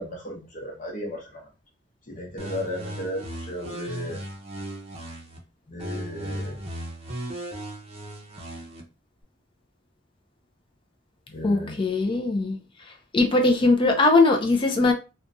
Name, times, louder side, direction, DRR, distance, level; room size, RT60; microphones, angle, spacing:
voice 1, 0.0-1.4 2.1-4.2 5.7-6.6 11.3-11.8, left 1 dB, 40° left, 0.9 m, -35 dB
sound 1, 2.4-5.4 5.8-8.8, right 1 dB, 35° right, 0.6 m, -36 dB
voice 2, 11.4-12.6 13.1-14.9, left 3 dB, 25° left, 0.4 m, -20 dB
2.9 x 2.3 x 2.5 m
head